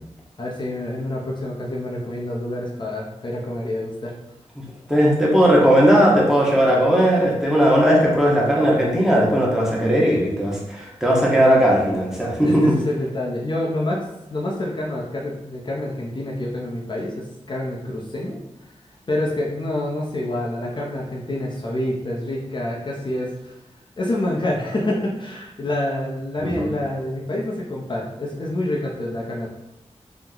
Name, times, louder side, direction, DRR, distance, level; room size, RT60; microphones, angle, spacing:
voice 1, 0.4-4.2 12.4-14.0 14.3-18.4 19.1-23.5 24.0-29.5, left 1 dB, 40° left, -4 dB, 0.6 m, -27 dB
voice 2, 4.9-12.7 26.4-26.7, equal, 5° right, -4 dB, 1.0 m, -17 dB
2.9 x 2.1 x 3.8 m, 0.91 s
cardioid pair, 50°, 12 cm